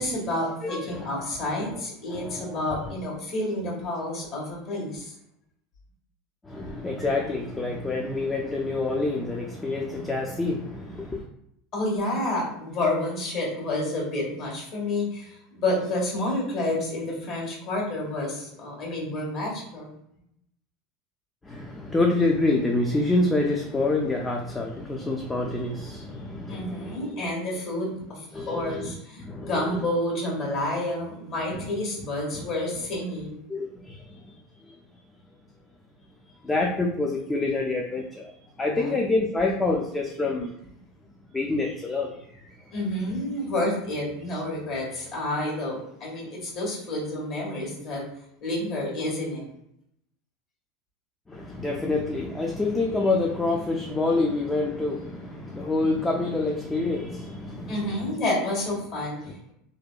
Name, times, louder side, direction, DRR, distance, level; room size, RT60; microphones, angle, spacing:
voice 1, 0.0-5.1 11.7-19.9 26.5-33.4 38.8-39.0 42.7-48.0 48.4-49.4 57.7-59.2, left 1 dB, 50° left, -3 dB, 1.3 m, -29 dB
voice 2, 0.6-1.1 1.6-1.8 2.1-2.9 6.4-11.3 21.4-27.2 28.3-29.9 31.5-31.7 32.3-32.4 33.5-34.4 34.6-34.8 36.4-38.3 38.6-40.5 41.3-42.7 51.3-58.1 59.3-59.4, left 2 dB, 15° left, 1 dB, 0.3 m, -27 dB
2.7 x 2.1 x 2.3 m, 0.75 s
supercardioid pair, 105°, 0 cm